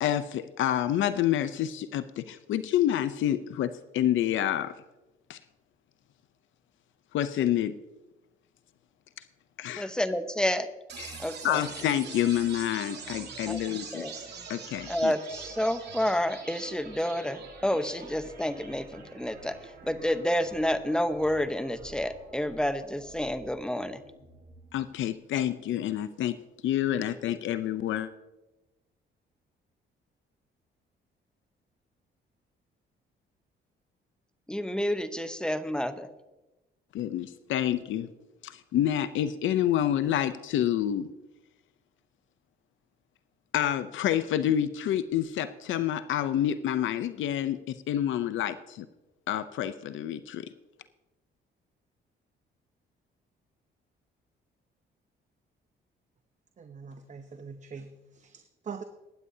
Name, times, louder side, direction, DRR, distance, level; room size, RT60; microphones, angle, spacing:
voice 1, 0.0-4.7 5.3-5.4 7.1-7.7 9.6-9.9 11.0-14.1 14.5-15.1 24.7-26.4 26.6-28.1 36.9-38.1 38.4-41.1 43.5-48.9 49.3-50.5, left 11 dB, 75° left, 12 dB, 0.6 m, -28 dB
voice 2, 9.8-10.7 11.2-11.6 13.5-13.6 13.9-14.1 14.9-24.0 34.5-36.1, left 1 dB, 5° left, 10 dB, 0.8 m, -29 dB
sound 1, 10.9-24.9, right 5 dB, 60° right, 2.7 m, -45 dB
voice 3, 56.6-58.8, right 5 dB, 35° right, 8 dB, 0.8 m, -43 dB
20.0 x 9.7 x 2.8 m, 1.1 s
cardioid pair, 90°, 20 cm